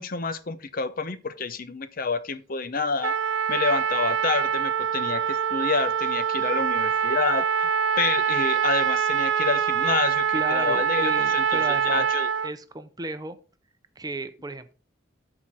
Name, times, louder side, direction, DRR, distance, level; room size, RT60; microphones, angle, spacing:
voice 1, 0.0-3.1 3.5-7.7 8.0-12.3, left 4 dB, 50° left, 0.7 m, -28 dB
Trumpet, 3.0-12.5, right 7 dB, 85° right, 0.5 m, -24 dB
voice 2, 10.3-12.1 12.4-13.4 14.0-14.7, right 2 dB, 20° right, 0.7 m, -34 dB
13.5 x 4.9 x 4.1 m
head